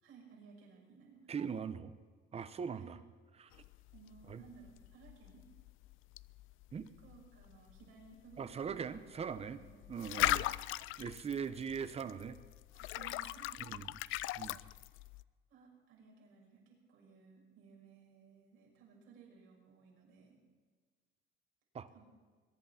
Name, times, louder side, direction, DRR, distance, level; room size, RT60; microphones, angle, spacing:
voice 1, 0.0-1.3 2.7-2.9 3.9-5.4 7.0-10.5 11.5-11.8 12.7-13.9 14.5-14.9 15.5-20.4 21.9-22.0, right 5 dB, 75° right, -2 dB, 6.2 m, -59 dB
voice 2, 1.3-1.9 2.3-3.0 3.4-3.5 4.3-4.4 6.7-6.9 8.4-9.6 9.9-12.4 13.7-13.8 14.4-14.6 21.7-21.9, right 6 dB, 30° right, 13 dB, 0.8 m, -41 dB
sound 1, 3.5-15.2, left 16 dB, 70° left, 0.4 m, -40 dB
21.5 x 11.0 x 5.7 m, 1.6 s
cardioid pair, 140°, 21 cm